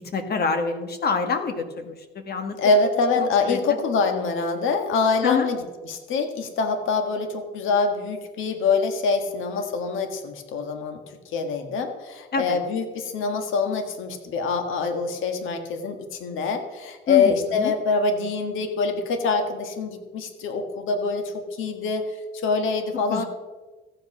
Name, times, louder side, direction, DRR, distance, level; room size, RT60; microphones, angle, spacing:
voice 1, 0.1-2.6 3.2-3.6 5.2-5.5 12.3-12.6 17.1-17.7 23.1-23.2, left 5 dB, 55° left, 6 dB, 1.5 m, -26 dB
voice 2, 2.6-11.0 11.3-22.1 22.4-23.2, left 4 dB, 85° left, 6 dB, 1.7 m, -25 dB
14.5 x 8.2 x 6.1 m, 1.2 s
cardioid pair, 90°, 20 cm